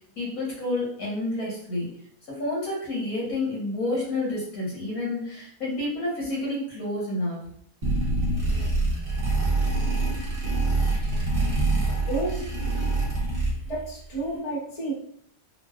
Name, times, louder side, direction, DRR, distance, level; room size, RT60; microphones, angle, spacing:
voice 1, 0.2-1.9 2.4-7.4, left 2 dB, 75° left, -6 dB, 1.8 m, -29 dB
sound 1, 7.8-13.9, right 2 dB, 45° right, 1.0 m, -25 dB
voice 2, 11.8-12.4 13.7-14.9, right 2 dB, 30° left, -6 dB, 0.9 m, -31 dB
3.7 x 2.3 x 2.4 m, 0.64 s
omnidirectional pair, 1.5 m